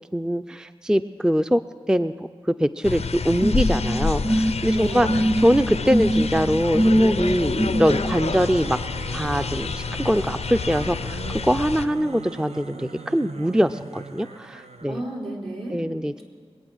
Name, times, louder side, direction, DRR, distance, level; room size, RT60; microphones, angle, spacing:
voice 1, 0.1-1.6 1.9-2.1 2.5-5.1 5.4-8.8 9.1-15.0 15.7-16.2, equal, 5° right, 11 dB, 0.4 m, -23 dB
sound 1, 2.8-11.9, left 5 dB, 90° left, 0.4 m, -28 dB
sound 2, 3.4-8.2, equal, 25° right, 1.7 m, -24 dB
voice 2, 4.7-5.3 14.2-14.4 14.9-15.8, right 1 dB, 65° right, -3 dB, 3.7 m, -33 dB
sound 3, 7.7-15.0, right 4 dB, 85° right, 0.6 m, -40 dB
22.0 x 8.8 x 6.2 m, 2.2 s
cardioid pair, 40°, 11 cm